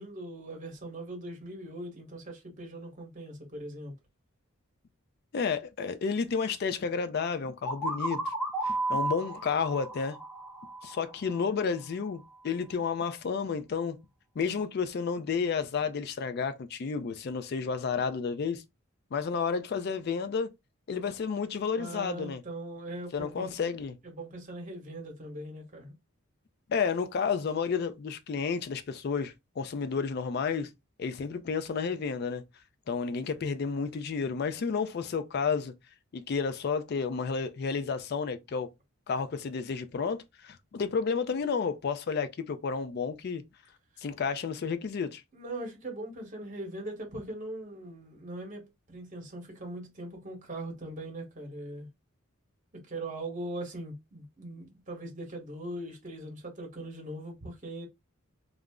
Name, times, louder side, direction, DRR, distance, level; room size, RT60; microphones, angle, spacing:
voice 1, 0.0-3.9 21.8-23.7 24.0-26.0 45.3-51.9 52.7-57.9, right 1 dB, 35° right, 1.0 m, -40 dB
voice 2, 5.3-8.3 8.6-10.2 10.8-14.0 14.4-18.6 19.1-20.5 20.9-22.4 23.1-24.0 26.7-30.7 31.0-32.4 32.9-35.7 36.1-38.7 39.1-43.4 44.0-45.2, left 5 dB, 50° left, 0.3 m, -31 dB
sound 1, 7.7-11.4, right 2 dB, ahead, 0.7 m, -33 dB
2.4 x 2.0 x 3.4 m
head